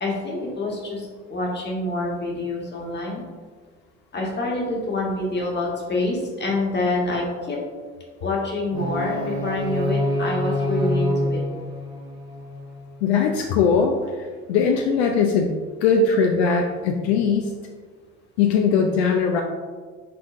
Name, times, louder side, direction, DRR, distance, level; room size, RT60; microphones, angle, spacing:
voice 1, 0.0-3.2 4.1-7.6 8.2-11.4, left 2 dB, 30° left, -2 dB, 1.4 m, -26 dB
sound 1, 8.7-12.7, left 1 dB, 15° right, 1.3 m, -26 dB
voice 2, 13.0-14.0 14.5-15.5 15.8-17.5 18.4-19.4, left 5 dB, 75° left, 2 dB, 0.5 m, -20 dB
5.4 x 3.8 x 2.5 m, 1.5 s
hypercardioid pair, 65°, 33 cm